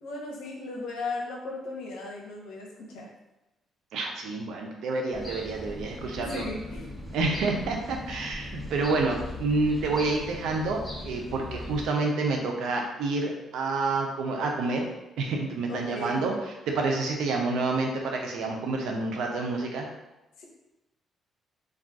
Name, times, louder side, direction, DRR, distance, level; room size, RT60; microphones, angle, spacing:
voice 1, 0.0-3.1 6.2-6.9 15.7-16.3 20.4-20.5, left 2 dB, 90° left, -1 dB, 0.7 m, -36 dB
voice 2, 3.9-6.5 7.1-14.8 15.2-16.3 16.7-19.9, right 3 dB, 85° right, 1 dB, 0.6 m, -28 dB
sound 1, 5.1-11.9, left 1 dB, 5° left, 0.7 m, -39 dB
2.4 x 2.3 x 3.5 m, 0.96 s
cardioid pair, 90°, 0 cm